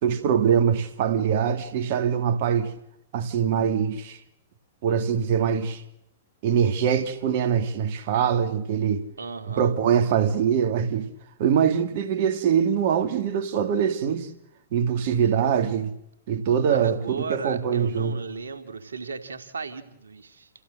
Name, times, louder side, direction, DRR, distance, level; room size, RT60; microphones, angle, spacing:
voice 1, 0.0-2.7 3.1-4.2 4.8-5.8 6.4-9.0 9.5-11.1 11.4-14.3 14.7-15.9 16.3-18.2, right 8 dB, 55° right, 2.6 m, -23 dB
voice 2, 9.2-9.8 16.7-20.5, right 4 dB, 80° right, 2.3 m, -35 dB
28.5 x 16.0 x 7.9 m
hypercardioid pair, 110°, 0 cm